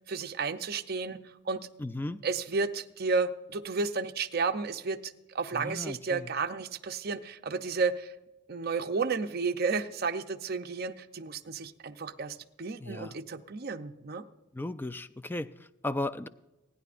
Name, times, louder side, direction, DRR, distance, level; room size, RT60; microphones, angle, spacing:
voice 1, 0.1-1.2 1.5-1.7 2.2-8.1 8.5-14.2, right 4 dB, 50° right, 7 dB, 0.6 m, -32 dB
voice 2, 1.8-2.2 5.5-6.3 12.8-13.2 14.5-16.3, left 2 dB, 10° left, 13 dB, 0.3 m, -36 dB
27.0 x 10.0 x 2.5 m, 1.0 s
head